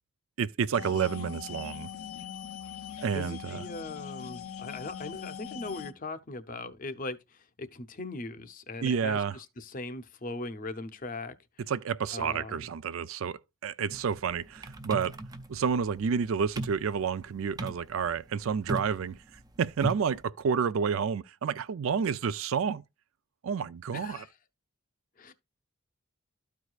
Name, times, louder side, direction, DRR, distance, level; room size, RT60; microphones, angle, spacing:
voice 1, 0.4-1.9 3.0-3.6 8.8-9.4 11.7-15.2 15.5-19.2 19.6-22.8 23.4-24.2, right 6 dB, 70° right, 0.4 m, -30 dB
sound 1, 0.7-5.9, left 8 dB, 85° left, 0.7 m, -41 dB
voice 2, 3.1-11.3 12.1-12.7 23.9-24.3 25.2-25.3, left 2 dB, 40° left, 0.6 m, -39 dB
sound 2, 13.9-20.2, right 1 dB, 20° right, 0.5 m, -38 dB
13.0 x 4.7 x 2.4 m
head